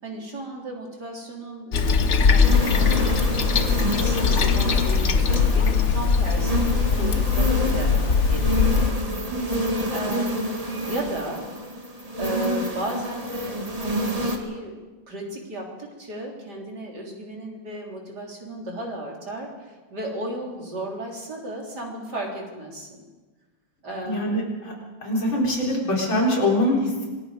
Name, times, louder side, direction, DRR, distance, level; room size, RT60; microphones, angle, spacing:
voice 1, 0.0-8.8 9.2-9.4 9.8-10.5 10.9-11.5 12.2-14.7 15.1-23.0 23.8-24.4, right 1 dB, 55° right, 0 dB, 4.2 m, -35 dB
Toilet flush, 1.7-8.9, left 5 dB, 45° left, 1.2 m, -21 dB
sound 1, 2.4-14.4, equal, 20° right, 1.9 m, -28 dB
voice 2, 9.1-9.5 9.8-9.9 24.0-24.7 25.0-27.1, left 1 dB, 85° left, -2 dB, 5.3 m, -24 dB
26.5 x 20.5 x 5.2 m, 1.3 s
omnidirectional pair, 2.1 m